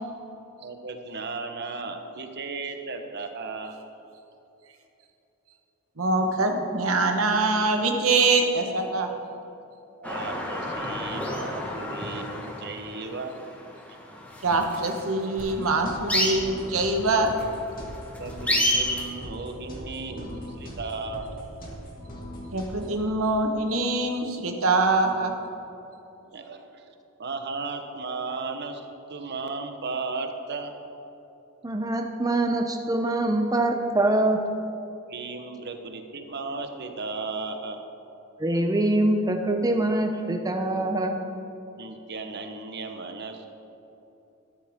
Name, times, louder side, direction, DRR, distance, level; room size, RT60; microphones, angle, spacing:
voice 1, 0.6-3.8 10.0-13.4 18.2-21.5 26.3-26.9 27.2-30.7 35.1-37.8 41.7-43.5, right 3 dB, 55° right, 5 dB, 1.1 m, -35 dB
voice 2, 6.0-9.1 14.4-17.3 22.5-25.3, right 3 dB, 85° right, 4 dB, 1.3 m, -24 dB
sound 1, 10.0-19.0, left 1 dB, 5° left, 1.5 m, -30 dB
sound 2, 15.4-23.1, equal, 45° left, 2.5 m, -40 dB
voice 3, 31.6-34.4 38.4-41.2, right 1 dB, 20° right, 4 dB, 0.6 m, -24 dB
13.0 x 13.0 x 3.7 m, 2.9 s
head